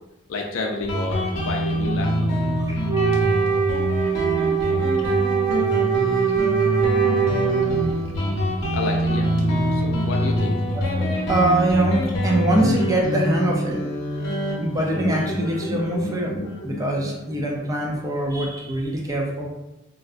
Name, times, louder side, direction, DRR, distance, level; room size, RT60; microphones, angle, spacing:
voice 1, 0.3-2.3 4.6-4.9 8.7-9.3 9.7-10.6, left 3 dB, 85° left, 1 dB, 0.4 m, -30 dB
Guitar, 0.9-18.1, equal, 70° left, 0.8 m, -25 dB
Wind instrument woodwind instrument, 2.9-8.0, right 8 dB, 55° right, 1.4 m, -22 dB
voice 2, 11.0-13.8 14.6-16.4 16.6-19.5, right 1 dB, 20° right, -1 dB, 0.4 m, -23 dB
3.8 x 2.2 x 2.4 m, 0.92 s
head